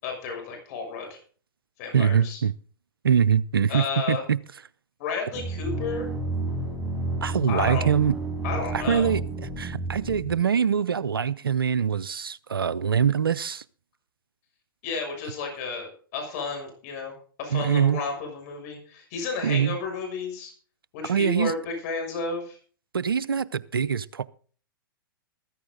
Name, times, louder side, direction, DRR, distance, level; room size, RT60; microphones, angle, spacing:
voice 1, 0.0-1.2 1.8-2.4 3.7-4.2 5.0-6.1 7.5-7.9 8.4-9.1 14.8-20.5 20.9-22.6, left 4 dB, 45° left, 6.5 m, -32 dB
voice 2, 1.9-2.5 3.0-4.4 7.2-8.1 8.7-9.2 9.6-13.6 17.5-18.0 19.4-19.8 21.0-21.5 22.9-24.2, right 7 dB, 80° right, 0.7 m, -23 dB
sound 1, 5.3-10.3, right 2 dB, 10° right, 4.8 m, -31 dB
14.5 x 14.0 x 3.9 m
figure-of-eight pair, 110°, 12 cm